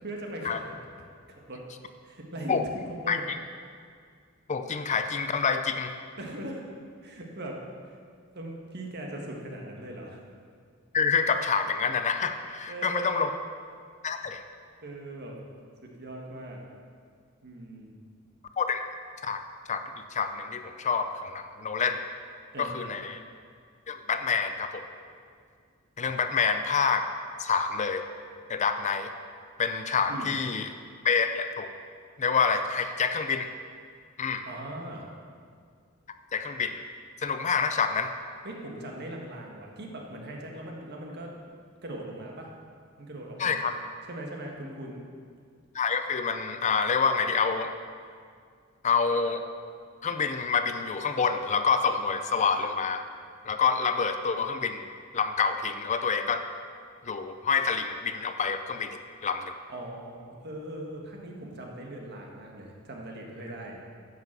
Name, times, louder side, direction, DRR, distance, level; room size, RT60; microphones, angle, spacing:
voice 1, 0.0-0.8 1.5-1.6 2.0-2.6 3.0-3.2 6.2-6.6 7.0-7.9 8.3-10.2 12.7-13.3 14.8-15.4 15.8-16.6 17.4-17.9 22.5-22.9 30.1-30.3 34.4-35.1 38.4-41.3 41.8-42.5 43.0-43.6 44.1-45.0 59.7-63.9, right 1 dB, 50° right, 0 dB, 1.6 m, -40 dB
voice 2, 4.5-5.9 10.9-13.3 14.0-14.4 18.6-18.8 19.2-19.4 19.7-19.8 20.1-22.1 22.6-23.2 23.9-24.8 26.0-27.1 27.4-28.0 28.5-29.1 29.6-30.7 31.0-31.7 32.2-33.5 34.2-34.4 36.3-36.8 37.2-38.1 43.4-43.7 45.7-47.7 48.8-49.4 50.0-53.0 53.5-54.8 55.1-56.4 57.0-59.5, left 5 dB, 35° left, 8 dB, 0.5 m, -27 dB
10.5 x 6.0 x 7.4 m, 2.1 s
head